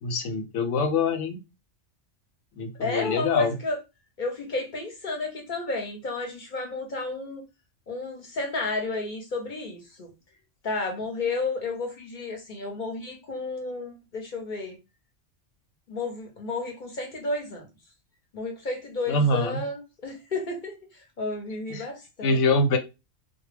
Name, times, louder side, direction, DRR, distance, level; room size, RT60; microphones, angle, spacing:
voice 1, 0.0-1.4 2.6-3.5 19.1-19.6 21.7-21.9 22.2-22.8, left 3 dB, 80° left, 7 dB, 0.9 m, -24 dB
voice 2, 2.8-3.8 4.2-7.4 7.9-10.1 10.6-14.8 15.9-17.7 18.3-22.4, left 3 dB, 50° left, 2 dB, 0.7 m, -32 dB
2.2 x 2.1 x 3.2 m, 0.26 s
omnidirectional pair, 1.2 m